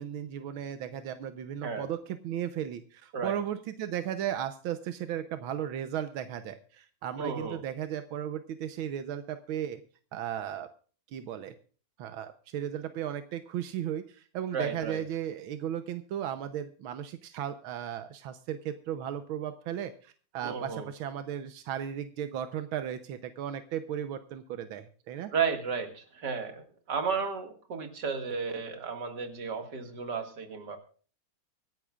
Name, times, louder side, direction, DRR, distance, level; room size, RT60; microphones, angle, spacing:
voice 1, 0.0-9.8 10.1-10.7 11.1-11.5 12.0-25.3, right 10 dB, 90° right, 9 dB, 1.7 m, -35 dB
voice 2, 7.2-7.6 14.5-15.0 20.4-20.9 25.3-30.8, right 5 dB, 55° right, 5 dB, 2.6 m, -33 dB
25.0 x 10.5 x 2.4 m, 0.41 s
omnidirectional pair, 2.2 m